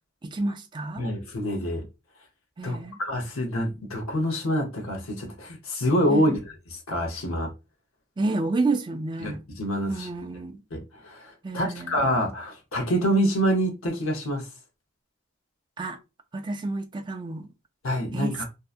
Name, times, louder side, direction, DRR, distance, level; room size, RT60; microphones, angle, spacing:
voice 1, 0.2-1.1 2.6-3.0 6.1-6.4 8.2-9.4 9.9-10.6 11.4-12.0 15.8-16.0 16.3-17.5 18.1-18.4, right 2 dB, 20° right, 0.3 m, -30 dB
voice 2, 1.0-1.8 2.6-6.3 6.7-7.5 9.2-10.1 10.7-14.5 17.8-18.4, equal, 80° left, 0.8 m, -26 dB
2.7 x 2.2 x 2.4 m
head